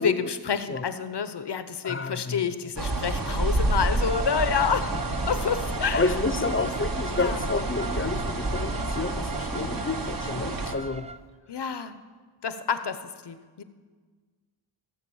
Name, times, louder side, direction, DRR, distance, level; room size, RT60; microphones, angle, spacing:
voice 1, 0.0-5.0 5.3-6.1 7.2-7.4 11.5-12.0 12.4-13.6, left 6 dB, 65° left, 12 dB, 0.8 m, -28 dB
voice 2, 1.8-2.4 5.9-11.1, left 3 dB, 30° left, 12 dB, 0.7 m, -29 dB
sound 1, 2.8-10.7, right 2 dB, 50° right, 1.1 m, -29 dB
Bowed string instrument, 4.0-11.2, right 4 dB, 15° right, 0.4 m, -38 dB
15.0 x 6.9 x 7.1 m, 1.5 s
wide cardioid pair, 50°, 44 cm